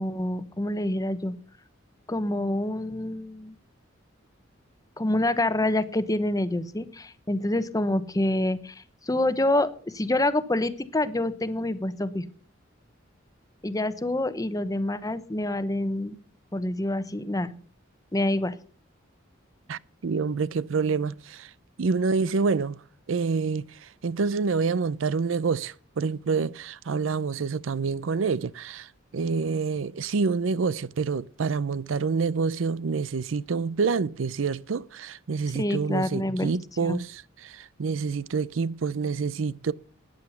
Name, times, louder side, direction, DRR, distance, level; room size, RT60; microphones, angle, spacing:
voice 1, 0.0-1.3 2.1-3.5 5.0-12.3 13.6-16.2 16.5-17.5 18.1-18.6 35.6-36.5 36.8-37.0, left 1 dB, 20° left, 0.9 m, -27 dB
voice 2, 19.7-21.5 21.8-22.8 23.1-39.7, right 5 dB, 75° right, 0.5 m, -27 dB
13.5 x 9.7 x 5.7 m
head